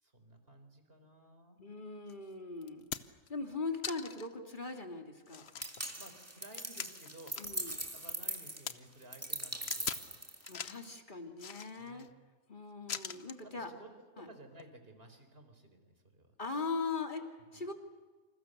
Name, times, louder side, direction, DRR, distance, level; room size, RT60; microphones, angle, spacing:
voice 1, 0.0-1.6 5.9-10.1 11.8-12.1 13.4-13.9 14.2-16.3 17.5-17.6, right 1 dB, 45° right, 7 dB, 4.5 m, -56 dB
voice 2, 1.6-5.5 7.4-7.7 10.5-12.1 12.5-13.7 14.2-14.3 16.4-17.7, left 4 dB, 35° left, 4 dB, 2.9 m, -40 dB
sound 1, 2.1-2.2 2.6-3.3 3.8-4.3 4.7-4.8 5.3-7.7 8.0-8.7 9.7-10.1 10.4-10.9 11.4-12.1 12.9-13.4 14.5-14.7, left 7 dB, 50° left, 1.1 m, -42 dB
sound 2, 5.6-10.8, right 1 dB, 10° right, 1.9 m, -41 dB
28.5 x 27.0 x 6.8 m, 1.4 s
omnidirectional pair, 1.4 m